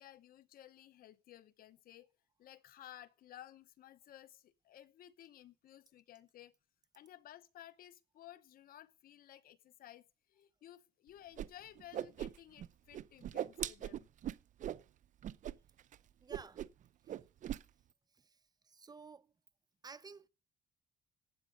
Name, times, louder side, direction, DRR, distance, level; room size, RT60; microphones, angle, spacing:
voice 1, 0.0-2.1 2.4-6.5 6.9-10.0 10.3-14.1, left 12 dB, 60° left, 0.9 m, -56 dB
Whoosh swoosh swish, 11.4-11.5 11.7-12.7 12.9-14.8 15.2-15.5 15.8-16.0 16.3-16.8 17.1-17.6, right 11 dB, 50° right, 0.6 m, -40 dB
voice 2, 16.2-16.7 17.1-17.2 18.1-19.3 19.8-20.3, right 4 dB, 25° right, 0.8 m, -54 dB
15.5 x 9.0 x 5.2 m
cardioid pair, 110°, 17 cm